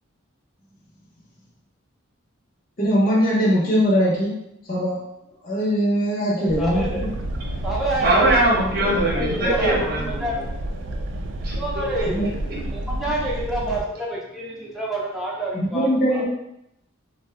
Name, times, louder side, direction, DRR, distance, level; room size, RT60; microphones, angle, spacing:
voice 1, 2.8-4.3 4.7-5.0 5.4-7.1 12.1-12.3 15.5-16.3, equal, 45° left, -6 dB, 0.8 m, -21 dB
voice 2, 6.4-7.1 7.6-8.5 9.3-9.8 10.2-10.4 11.5-16.3, right 2 dB, ahead, -5 dB, 0.5 m, -28 dB
sound 1, 6.5-13.8, right 1 dB, 65° right, 0.3 m, -30 dB
voice 3, 8.0-10.5 11.4-11.6 12.0-12.1 12.6-12.7, right 1 dB, 45° right, -3 dB, 0.8 m, -21 dB
2.5 x 2.2 x 3.4 m, 0.82 s
head